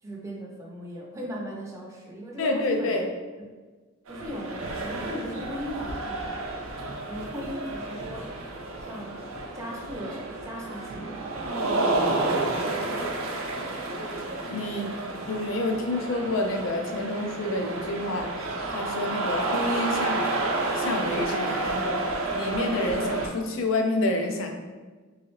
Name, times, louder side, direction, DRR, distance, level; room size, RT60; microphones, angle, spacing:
voice 1, 0.0-3.0 3.4-3.5 4.1-8.3 8.8-9.2 9.5-12.1, equal, 15° right, -3 dB, 0.5 m, -38 dB
voice 2, 2.4-3.1 14.4-14.9 15.3-18.3 18.7-20.3 20.7-24.5, left 2 dB, 70° left, 3 dB, 0.5 m, -28 dB
sound 1, 4.1-23.3, right 2 dB, 85° right, 0.6 m, -30 dB
3.5 x 3.1 x 3.1 m, 1.3 s
head